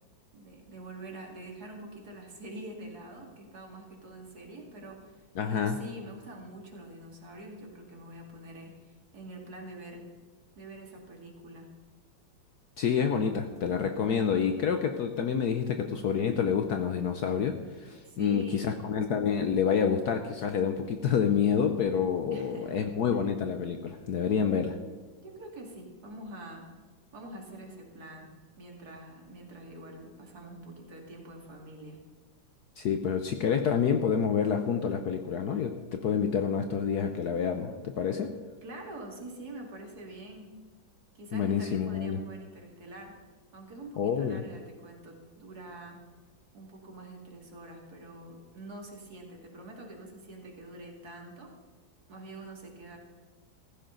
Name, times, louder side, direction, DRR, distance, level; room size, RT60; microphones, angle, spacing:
voice 1, 0.3-10.1 10.5-11.7 18.0-18.8 22.3-22.8 23.1-23.2 25.2-26.7 27.1-28.3 28.6-32.0 38.6-40.5 41.1-43.2 43.5-46.0 46.5-51.5 52.1-53.0, right 1 dB, 50° right, 0 dB, 2.9 m, -45 dB
voice 2, 5.4-5.8 12.8-24.8 32.8-38.3 41.3-42.2 44.0-44.4, left 7 dB, 65° left, 6 dB, 1.2 m, -28 dB
15.5 x 15.0 x 3.9 m, 1.4 s
omnidirectional pair, 2.1 m